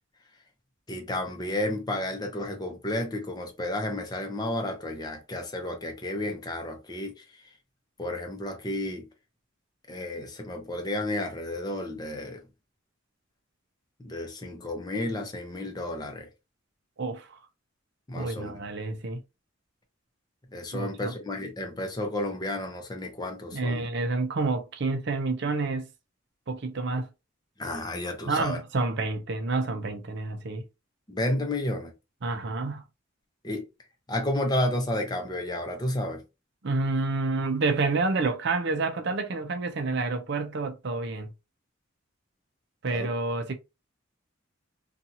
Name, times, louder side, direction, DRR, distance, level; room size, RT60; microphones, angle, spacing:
voice 1, 0.9-7.2 8.0-9.1 9.9-12.4 14.0-16.3 18.1-18.6 20.5-23.9 27.6-28.6 31.1-31.9 33.4-33.6 34.1-36.2 42.9-43.1, left 1 dB, 20° left, 0.6 m, -31 dB
voice 2, 17.0-17.4 18.1-19.2 20.7-21.1 23.5-25.9 26.5-27.1 28.3-30.6 32.2-32.8 36.6-41.3 42.8-43.5, right 3 dB, 60° right, 0.5 m, -29 dB
2.7 x 2.4 x 2.7 m
head